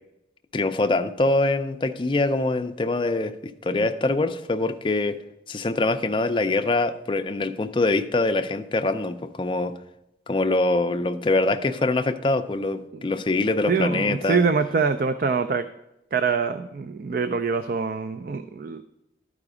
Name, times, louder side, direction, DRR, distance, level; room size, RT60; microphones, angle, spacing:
voice 1, 0.5-5.2 5.5-9.7 10.3-14.5, left 2 dB, 25° left, 8 dB, 0.4 m, -24 dB
voice 2, 13.7-15.7 16.1-18.8, right 5 dB, 50° right, 10 dB, 0.3 m, -24 dB
12.0 x 4.9 x 4.9 m, 0.89 s
head